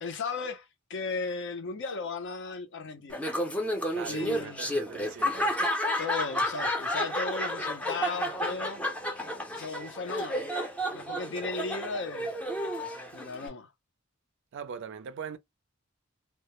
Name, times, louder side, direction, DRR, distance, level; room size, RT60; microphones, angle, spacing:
voice 1, 0.0-3.3 4.1-4.7 6.0-8.8 9.5-10.5 10.9-12.4 13.1-13.7, left 4 dB, 60° left, 0.5 m, -36 dB
Laughter, 3.1-13.5, equal, 5° left, 0.5 m, -31 dB
voice 2, 3.9-5.5 14.5-15.4, right 7 dB, 60° right, 0.4 m, -40 dB
2.2 x 2.0 x 2.9 m
head